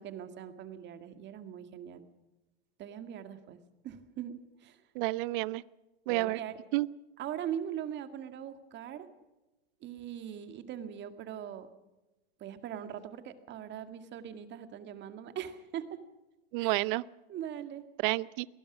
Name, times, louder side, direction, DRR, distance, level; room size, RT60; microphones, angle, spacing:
voice 1, 0.0-2.1 2.8-3.6 3.8-4.8 6.1-6.6 7.2-9.1 9.8-11.7 12.4-16.0 16.6-16.8 17.3-17.8, right 9 dB, 35° right, 9 dB, 2.1 m, -41 dB
voice 2, 4.9-5.6 6.1-6.4 6.7-6.9 16.5-17.0 18.0-18.5, right 21 dB, 50° right, 21 dB, 0.7 m, -30 dB
22.0 x 20.0 x 6.1 m, 1.0 s
hypercardioid pair, 120°, 32 cm